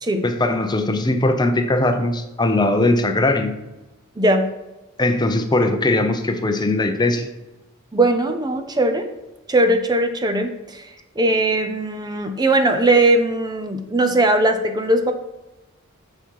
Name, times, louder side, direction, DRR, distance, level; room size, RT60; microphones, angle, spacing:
voice 1, 0.2-3.5 5.0-7.3, left 2 dB, 20° left, 7 dB, 0.6 m, -20 dB
voice 2, 4.2-4.5 7.9-9.1 9.5-10.9 11.2-15.1, right 1 dB, 20° right, 6 dB, 0.6 m, -19 dB
7.3 x 6.9 x 4.7 m, 1.0 s
head